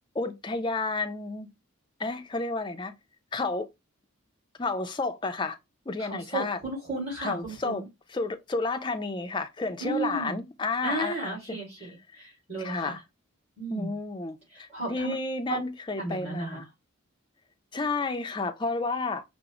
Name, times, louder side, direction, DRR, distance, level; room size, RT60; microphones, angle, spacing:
voice 1, 0.1-1.5 2.0-2.9 3.3-3.7 4.6-5.6 5.9-6.6 7.2-7.8 8.1-11.9 12.6-13.0 13.7-16.6 17.7-19.2, left 3 dB, 20° left, 0.4 m, -31 dB
voice 2, 6.0-7.8 9.8-10.4 10.8-11.9 12.1-13.0 13.6-13.9 14.5-15.1 15.5-15.6 16.0-16.6, right 2 dB, 30° right, 2.1 m, -34 dB
4.8 x 2.0 x 2.9 m
head